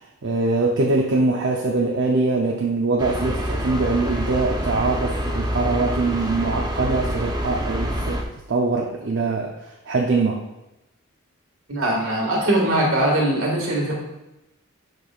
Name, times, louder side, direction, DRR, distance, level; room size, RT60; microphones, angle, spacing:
voice 1, 0.2-9.5 9.9-10.4, right 3 dB, 60° right, -1 dB, 0.7 m, -23 dB
sound 1, 3.0-8.2, equal, 20° right, 0.7 m, -26 dB
voice 2, 11.7-13.9, right 1 dB, 75° right, -1 dB, 1.9 m, -21 dB
10.5 x 4.8 x 2.5 m, 0.93 s
head